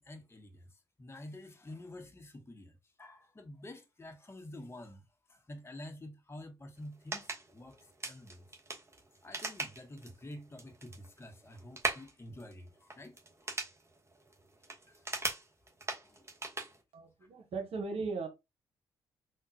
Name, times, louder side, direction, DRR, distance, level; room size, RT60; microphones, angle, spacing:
voice 1, 0.0-8.5 9.2-13.5 14.6-15.4 16.0-16.3 17.2-17.3, left 1 dB, 25° left, 0.9 m, -49 dB
sound 1, 6.8-16.8, right 2 dB, 25° right, 1.1 m, -41 dB
voice 2, 16.9-18.3, right 4 dB, 65° right, 1.0 m, -37 dB
3.6 x 2.2 x 2.7 m
hypercardioid pair, 45°, 11 cm